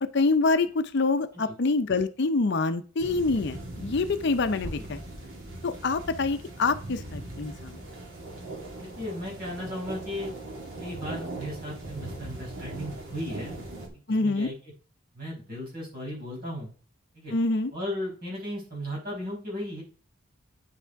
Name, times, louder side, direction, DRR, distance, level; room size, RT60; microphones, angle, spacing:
voice 1, 0.0-5.0 5.6-7.8 14.1-14.5 17.3-17.7, left 3 dB, 55° left, 10 dB, 0.6 m, -26 dB
sound 1, 3.0-13.9, right 2 dB, 75° right, 2.9 m, -40 dB
voice 2, 4.5-4.9 8.8-10.3 10.8-13.6 14.2-14.5 15.1-16.7 17.1-17.3 17.7-19.8, equal, 45° right, -4 dB, 5.4 m, -36 dB
sound 2, 4.6-8.6, left 1 dB, ahead, 2.9 m, -48 dB
9.2 x 5.9 x 4.6 m, 0.39 s
head